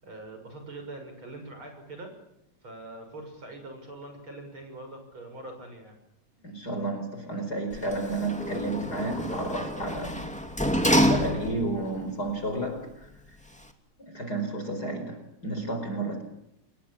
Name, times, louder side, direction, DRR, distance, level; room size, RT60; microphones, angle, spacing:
voice 1, 0.0-2.1 2.6-6.0, right 2 dB, 40° right, 5 dB, 7.3 m, -43 dB
voice 2, 6.4-10.4 10.8-13.1 14.0-16.2, right 2 dB, 30° left, 6 dB, 5.0 m, -32 dB
Sliding door, 7.7-11.8 12.3-12.4, equal, 5° left, 2.1 m, -27 dB
27.5 x 22.5 x 8.8 m, 0.81 s
omnidirectional pair, 3.7 m